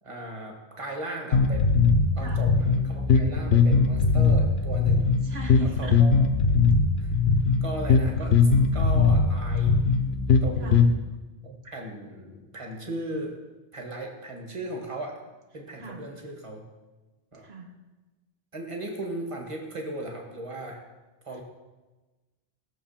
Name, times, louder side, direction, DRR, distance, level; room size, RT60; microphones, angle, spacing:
voice 1, 0.0-1.7 2.2-5.1 5.6-6.3 7.0-7.1 7.6-9.8 10.4-10.9 11.4-13.4 13.7-15.2 15.5-16.6 17.3-17.5 18.5-20.8 21.3-21.4, right 2 dB, 30° right, 1 dB, 1.9 m, -37 dB
sound 1, 1.3-10.9, left 4 dB, 85° left, 1.2 m, -21 dB
voice 2, 5.2-6.0 10.6-10.9 15.8-16.0 17.4-17.7, equal, 80° right, 1 dB, 1.7 m, -38 dB
18.0 x 6.9 x 5.8 m, 1.2 s
omnidirectional pair, 1.0 m